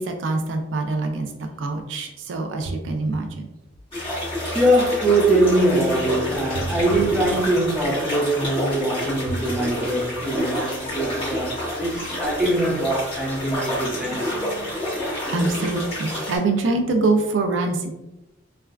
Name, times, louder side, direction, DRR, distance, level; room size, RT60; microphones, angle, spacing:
voice 1, 0.0-3.5 9.3-9.4 14.3-14.8 15.3-17.9, right 3 dB, 70° right, 4 dB, 0.4 m, -25 dB
sound 1, 3.9-16.4, left 1 dB, 30° left, 1.2 m, -29 dB
voice 2, 4.5-14.3, right 1 dB, 5° right, -4 dB, 0.6 m, -22 dB
3.2 x 2.3 x 2.3 m, 0.92 s
head